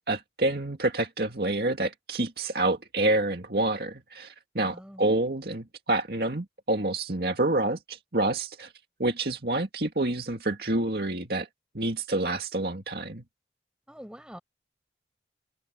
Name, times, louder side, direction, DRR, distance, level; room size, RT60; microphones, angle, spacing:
voice 1, 0.1-8.7 9.0-11.5 11.7-13.2, right 2 dB, 60° right, 2.2 m, -28 dB
voice 2, 4.6-5.0 13.9-14.4, equal, 5° right, 6.6 m, -45 dB
head